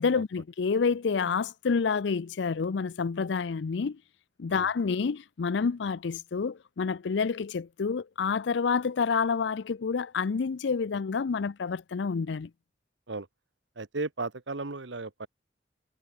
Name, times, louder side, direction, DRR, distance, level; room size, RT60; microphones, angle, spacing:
voice 1, 0.0-4.0 4.4-12.5, left 5 dB, 75° left, 0.5 m, -28 dB
voice 2, 13.8-15.3, right 3 dB, 80° right, 1.3 m, -35 dB
head